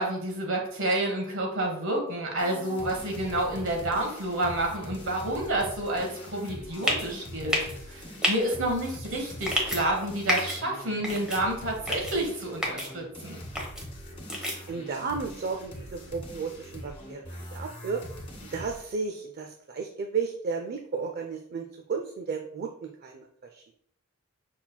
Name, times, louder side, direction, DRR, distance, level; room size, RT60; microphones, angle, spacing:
voice 1, 0.0-13.4, right 1 dB, 65° right, 1 dB, 1.3 m, -29 dB
sound 1, 2.4-18.9, equal, 30° left, 1.3 m, -43 dB
sound 2, 6.8-7.1 7.5-7.7 8.2-8.3 9.4-9.8 10.3-10.6 11.0-11.4 11.9-12.1 12.6-12.9 13.6-13.8 14.3-14.6, equal, 5° right, 1.0 m, -28 dB
voice 2, 14.7-18.0 18.5-23.6, right 5 dB, 45° right, 3 dB, 0.4 m, -33 dB
5.6 x 4.1 x 2.2 m, 0.65 s
head